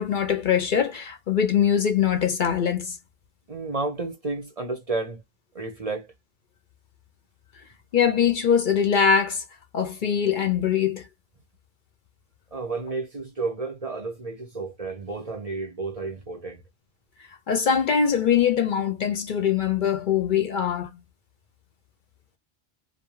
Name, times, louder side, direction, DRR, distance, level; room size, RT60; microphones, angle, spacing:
voice 1, 0.0-3.0 7.9-9.4 9.7-11.0 17.5-20.9, left 7 dB, 55° left, 0.7 m, -22 dB
voice 2, 3.5-5.2 5.5-6.1 12.5-16.6, right 3 dB, 40° right, 0.7 m, -31 dB
2.6 x 2.3 x 3.0 m
omnidirectional pair, 1.1 m